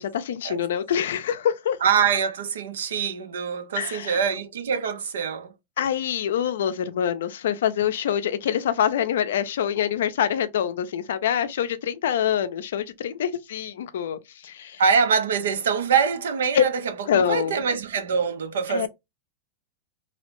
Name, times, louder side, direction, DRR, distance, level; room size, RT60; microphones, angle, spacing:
voice 1, 0.0-1.8 3.8-4.2 5.8-14.8 16.5-16.6 17.1-17.6 18.7-18.9, left 9 dB, 80° left, 0.4 m, -25 dB
voice 2, 1.8-5.5 14.8-18.9, right 6 dB, 85° right, 0.6 m, -24 dB
2.6 x 2.0 x 3.0 m
hypercardioid pair, 125°, 0 cm